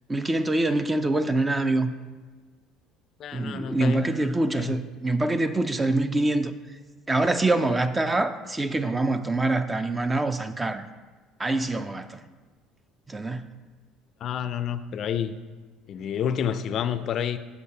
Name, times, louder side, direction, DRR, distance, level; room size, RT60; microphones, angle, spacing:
voice 1, 0.1-1.9 3.3-6.5 7.1-10.8 11.4-12.2 13.1-13.4, right 2 dB, 15° right, 0.4 m, -25 dB
voice 2, 3.2-4.0 4.6-4.8 14.2-15.3 15.9-17.4, left 8 dB, 55° left, 0.4 m, -29 dB
8.2 x 6.7 x 2.8 m
supercardioid pair, 95°, 0 cm